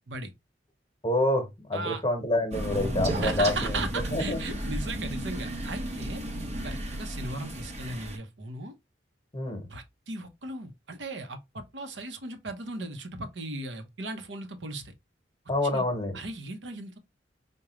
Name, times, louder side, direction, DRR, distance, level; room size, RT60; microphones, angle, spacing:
voice 1, 1.0-3.9 4.1-4.6 9.3-9.7 15.5-16.2, left 1 dB, 25° left, 1.0 m, -27 dB
Crow, 2.5-8.2, right 1 dB, 40° right, 0.8 m, -33 dB
voice 2, 3.1-6.2 6.6-8.7 9.7-14.9 15.7-15.8 16.1-17.0, right 2 dB, 80° right, 0.8 m, -37 dB
4.8 x 2.2 x 3.0 m
head